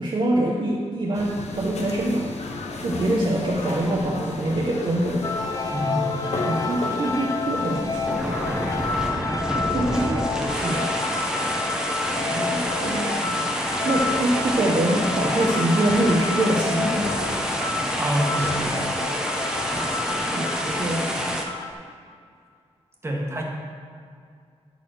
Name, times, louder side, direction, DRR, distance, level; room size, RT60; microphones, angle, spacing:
voice 1, 0.0-2.3 2.8-5.3 6.4-8.3 9.7-11.0 12.2-17.2 20.2-21.3, right 1 dB, 45° right, -3 dB, 0.8 m, -25 dB
sound 1, 1.1-9.1, left 3 dB, 75° left, 1.0 m, -34 dB
sound 2, 5.2-21.7, left 4 dB, 30° left, 0.5 m, -30 dB
voice 2, 5.7-6.5 18.0-18.7 23.0-23.4, right 1 dB, 20° right, -2 dB, 1.5 m, -27 dB
sound 3, 7.6-21.4, equal, 5° right, 0.9 m, -28 dB
12.0 x 4.1 x 6.4 m, 2.2 s
wide cardioid pair, 165°, 12 cm